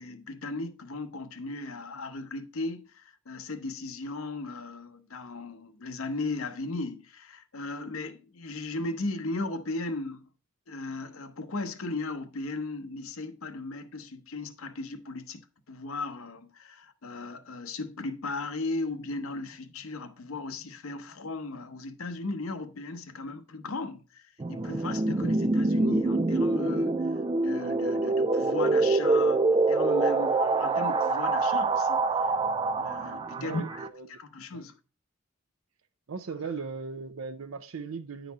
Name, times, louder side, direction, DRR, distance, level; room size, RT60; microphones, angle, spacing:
voice 1, 0.0-10.3 10.7-15.4 15.7-32.0 32.8-33.8 34.1-34.7, left 2 dB, 90° left, 0.8 m, -36 dB
sound 1, 24.4-33.9, right 3 dB, 25° right, 0.3 m, -25 dB
voice 2, 33.4-34.1 34.5-34.6 36.1-38.3, right 5 dB, 90° right, 0.5 m, -38 dB
10.0 x 4.0 x 4.1 m
head